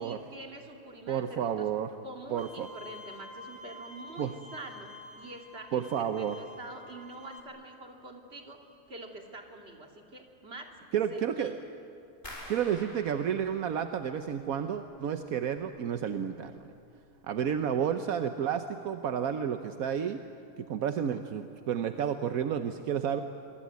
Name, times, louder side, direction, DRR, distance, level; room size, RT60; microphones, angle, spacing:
voice 1, 0.0-1.7 2.0-10.8 11.1-11.6, right 2 dB, 45° right, 2 dB, 2.9 m, -46 dB
voice 2, 1.1-1.9 2.3-2.7 4.2-4.3 5.7-6.4 10.9-11.6 12.5-16.6 17.3-20.2 20.6-23.2, right 8 dB, 80° right, 8 dB, 1.3 m, -31 dB
Bowed string instrument, 2.4-7.4, left 2 dB, 5° right, 3.1 m, -48 dB
sound 1, 12.2-15.1 15.4-16.1 16.5-16.9 17.3-17.4, left 1 dB, 50° left, 7.1 m, -49 dB
27.5 x 22.0 x 9.3 m, 2.6 s
omnidirectional pair, 1.5 m